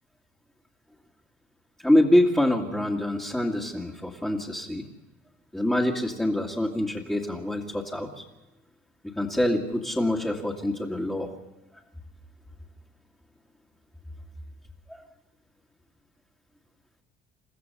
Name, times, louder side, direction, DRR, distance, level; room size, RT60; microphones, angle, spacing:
voice 1, 1.8-4.8 5.5-8.2 9.2-11.3 14.9-15.0, left 1 dB, 5° left, -3 dB, 2.1 m, -25 dB
29.5 x 15.0 x 6.9 m, 1.1 s
cardioid pair, 145°, 20 cm